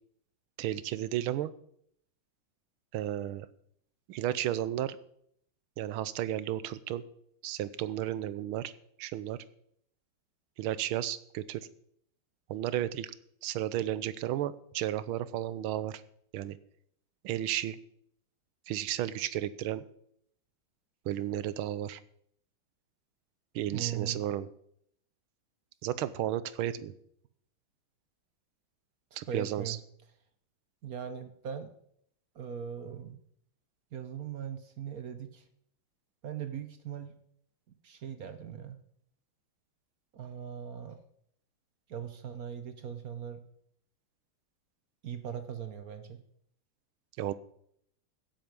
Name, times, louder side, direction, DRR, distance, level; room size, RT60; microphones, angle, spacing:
voice 1, 0.6-1.5 2.9-3.5 4.1-5.0 5.8-7.0 7.4-8.7 9.0-9.4 10.6-11.7 12.5-13.1 13.4-16.0 16.3-16.6 17.2-17.8 18.7-19.8 21.0-22.0 23.5-24.5 25.8-26.9 29.2-29.8 47.2-47.3, right 12 dB, 85° right, 16 dB, 1.5 m, -33 dB
voice 2, 23.7-24.2 29.3-29.8 30.8-31.7 32.3-33.2 33.9-35.5 36.2-37.1 37.7-38.8 40.1-41.0 41.9-43.4 45.0-46.2, right 8 dB, 60° right, 10 dB, 1.0 m, -39 dB
16.5 x 7.9 x 5.2 m, 0.68 s
omnidirectional pair, 2.3 m